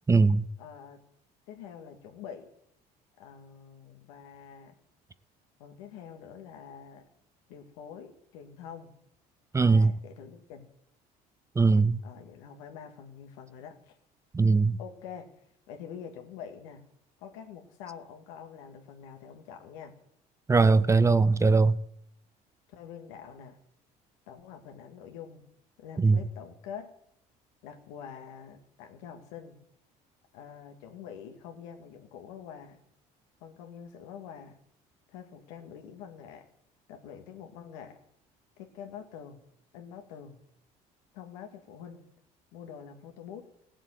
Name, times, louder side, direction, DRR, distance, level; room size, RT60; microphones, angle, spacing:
voice 1, 0.1-0.5 9.5-9.9 11.6-12.0 14.3-14.8 20.5-21.8 26.0-26.2, right 4 dB, 15° right, 0.6 m, -21 dB
voice 2, 0.6-1.0 1.5-2.5 3.2-4.8 5.6-7.1 7.5-8.9 9.5-10.7 12.0-14.0 14.8-15.3 15.7-16.8 17.2-20.0 22.7-23.6 24.3-25.4 25.8-26.9 27.6-29.6 30.3-32.8 33.4-34.6 35.1-36.5 36.9-38.0 38.6-39.4 39.7-40.4 41.1-42.1 42.5-43.5, left 8 dB, 90° left, 2.1 m, -46 dB
16.5 x 7.6 x 9.2 m
supercardioid pair, 100°, 17 cm